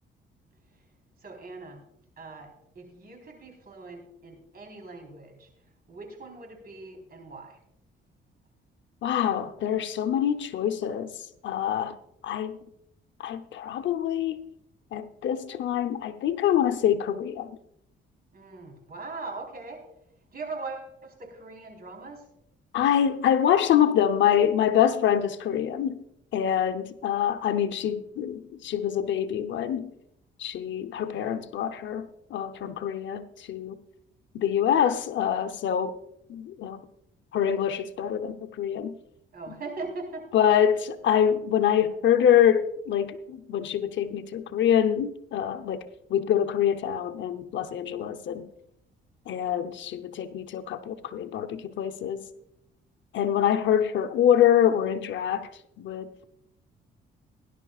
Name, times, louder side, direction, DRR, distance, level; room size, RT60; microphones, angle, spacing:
voice 1, 1.2-1.9 2.2-5.5 5.9-7.6 18.3-19.9 20.3-22.3 39.3-40.6, right 3 dB, 50° right, 4.0 m, -40 dB
voice 2, 9.0-11.1 11.4-12.0 12.2-12.6 13.2-14.4 14.9-17.5 22.7-26.0 26.3-29.9 30.4-33.8 34.3-36.0 36.3-36.8 37.3-39.0 40.3-48.4 49.3-52.2 53.1-55.5 55.8-56.1, left 9 dB, 70° left, 0.8 m, -25 dB
18.5 x 11.0 x 2.4 m
cardioid pair, 90°, 20 cm